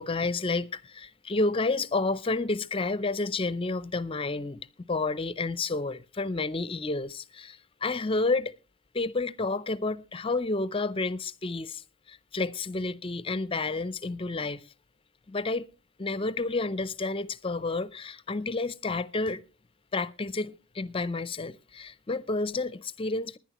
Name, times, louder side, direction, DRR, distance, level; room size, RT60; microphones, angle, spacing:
voice 1, 0.0-8.5 8.9-11.8 12.1-14.6 15.3-15.6 16.0-19.4 19.9-23.4, left 3 dB, 25° left, 0.5 m, -30 dB
20.0 x 10.5 x 3.0 m
head